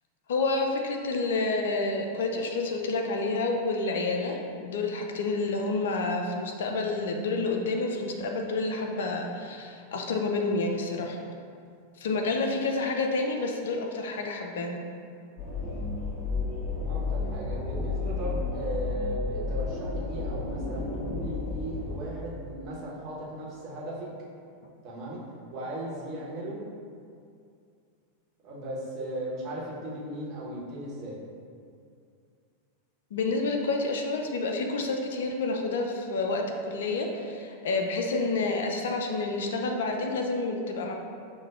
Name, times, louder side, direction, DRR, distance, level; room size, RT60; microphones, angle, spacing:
voice 1, 0.3-11.2 12.0-14.9 33.1-40.9, left 3 dB, 60° left, 2 dB, 0.3 m, -29 dB
sound 1, 15.4-22.0, left 3 dB, 30° left, 1.4 m, -32 dB
voice 2, 16.9-24.1 24.8-25.2 25.5-26.6 28.4-31.2, right 1 dB, 35° right, -6 dB, 0.9 m, -36 dB
5.9 x 2.1 x 2.4 m, 2.4 s
figure-of-eight pair, 90°, 0 cm